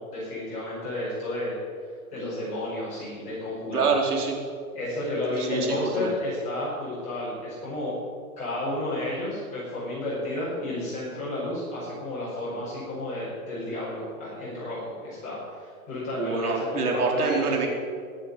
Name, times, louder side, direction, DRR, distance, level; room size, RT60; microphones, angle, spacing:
voice 1, 0.0-1.5 2.1-3.9 4.7-8.0 8.4-17.4, left 1 dB, 15° left, -9 dB, 5.1 m, -32 dB
voice 2, 3.7-4.4 5.4-6.1 16.2-17.7, right 4 dB, 80° right, 1 dB, 4.3 m, -26 dB
20.5 x 7.2 x 8.1 m, 2.1 s
hypercardioid pair, 170°, 45 cm